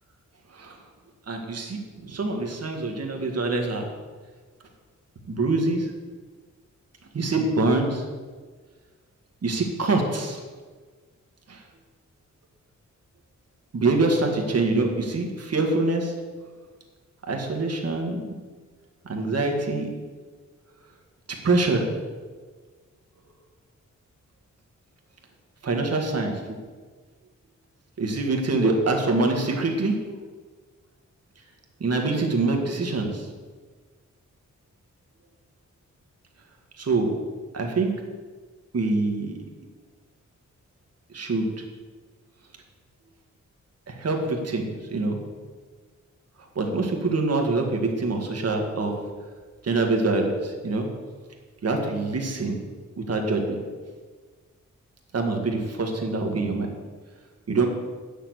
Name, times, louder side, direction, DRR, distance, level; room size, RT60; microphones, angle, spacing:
voice 1, 1.3-3.9 5.3-5.9 7.1-8.0 9.4-10.4 11.5-11.6 13.7-16.1 17.3-18.3 19.1-19.9 21.4-21.8 25.6-26.6 28.0-30.0 31.8-33.3 36.8-37.1 37.5-37.9 38.7-39.3 41.1-41.5 43.9-45.2 46.6-48.9 49.6-50.9 51.6-52.6 53.0-53.6 55.1-56.7 57.5-57.7, right 3 dB, 55° right, 2 dB, 1.8 m, -25 dB
9.0 x 6.9 x 7.8 m, 1.5 s
wide cardioid pair, 165°, 31 cm